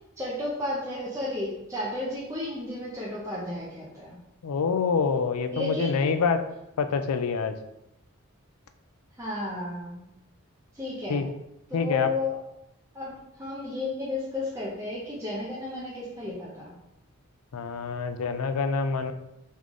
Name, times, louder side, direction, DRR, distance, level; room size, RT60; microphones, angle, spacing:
voice 1, 0.2-4.2 5.5-6.2 9.2-10.0 10.7-11.3 11.7-12.4 12.9-16.7, left 2 dB, 15° right, -7 dB, 0.6 m, -33 dB
voice 2, 4.4-6.4 6.8-7.5 11.1-11.3 11.7-12.1 17.5-19.1, left 5 dB, 85° left, 8 dB, 0.4 m, -26 dB
3.7 x 3.1 x 3.6 m, 0.86 s
head